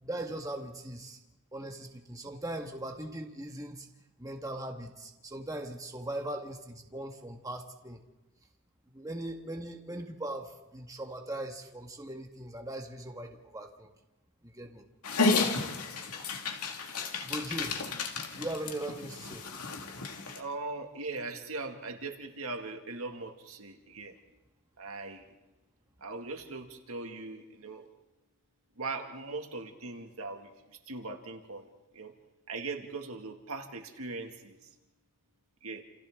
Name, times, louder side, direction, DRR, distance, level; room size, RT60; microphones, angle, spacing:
voice 1, 0.0-1.2 1.5-3.9 4.2-8.0 8.9-13.9 14.4-14.8 17.2-17.8 18.3-19.4, right 1 dB, 15° right, 2 dB, 1.6 m, -39 dB
Dog, 15.0-20.4, left 4 dB, 85° left, 2.1 m, -32 dB
voice 2, 20.3-24.2 24.8-25.3 26.0-27.9 28.8-31.7 31.9-32.1 32.5-34.7 35.6-35.8, right 3 dB, 70° right, 4 dB, 2.2 m, -40 dB
29.0 x 28.5 x 3.8 m, 1.0 s
head